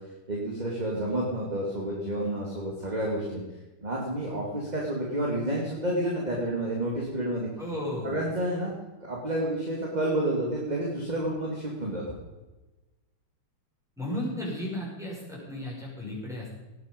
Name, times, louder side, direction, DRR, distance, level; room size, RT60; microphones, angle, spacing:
voice 1, 0.3-3.4 3.8-7.5 8.0-8.7 9.0-12.2, right 1 dB, 20° right, -2 dB, 2.5 m, -30 dB
voice 2, 7.6-8.2 14.0-16.6, left 1 dB, ahead, -4 dB, 5.7 m, -34 dB
18.5 x 9.7 x 5.3 m, 1.1 s
omnidirectional pair, 2.3 m